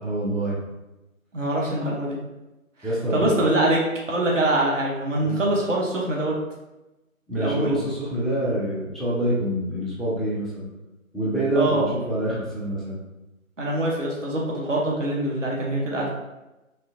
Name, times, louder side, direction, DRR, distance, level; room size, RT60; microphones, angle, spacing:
voice 1, 0.0-0.6 2.8-3.4 5.2-5.4 7.3-10.7 11.1-13.0, right 1 dB, ahead, -9 dB, 0.5 m, -26 dB
voice 2, 1.3-2.2 3.1-3.8 4.1-6.3 7.4-7.7 11.5-11.9 13.6-16.1, right 1 dB, 60° right, -3 dB, 0.7 m, -24 dB
3.0 x 2.4 x 2.5 m, 1.0 s
figure-of-eight pair, 175°, 42 cm